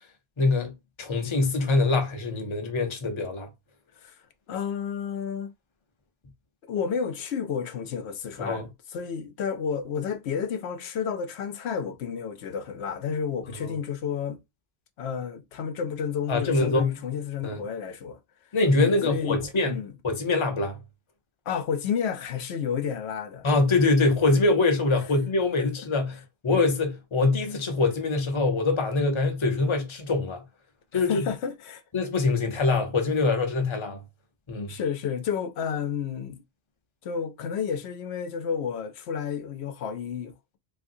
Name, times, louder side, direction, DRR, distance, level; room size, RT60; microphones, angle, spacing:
voice 1, 0.4-0.7 1.0-3.5 8.4-8.7 13.6-13.7 16.3-17.0 17.4-17.6 18.5-19.8 20.0-20.8 23.4-30.4 30.9-31.3 31.9-34.0 34.5-34.7, left 3 dB, 30° left, 0.7 m, -24 dB
voice 2, 4.5-5.5 6.7-14.4 15.0-18.2 18.8-19.4 19.6-19.9 21.5-23.5 25.8-25.9 30.9-31.8 32.5-32.6 34.7-36.4 37.0-40.6, left 7 dB, 85° left, 0.9 m, -31 dB
3.5 x 2.6 x 2.6 m
omnidirectional pair, 1.1 m